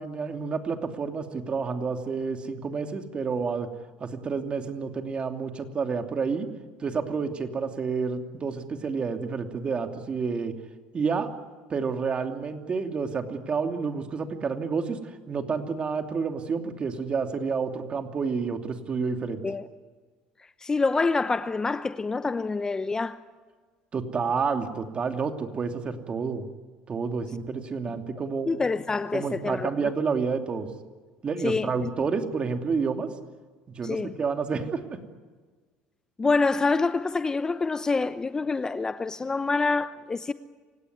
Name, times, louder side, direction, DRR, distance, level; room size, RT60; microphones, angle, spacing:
voice 1, 0.0-3.7 4.0-6.5 6.8-10.5 10.9-11.3 11.7-15.0 15.3-19.4 23.9-26.5 26.9-28.5 29.1-30.7 31.2-33.1 33.7-35.0, right 5 dB, 35° right, 2.8 m, -29 dB
voice 2, 20.6-23.2 28.5-29.9 31.4-31.9 33.8-34.1 36.2-40.3, left 4 dB, 20° left, 0.8 m, -26 dB
27.5 x 17.5 x 9.6 m
supercardioid pair, 105°, 3 cm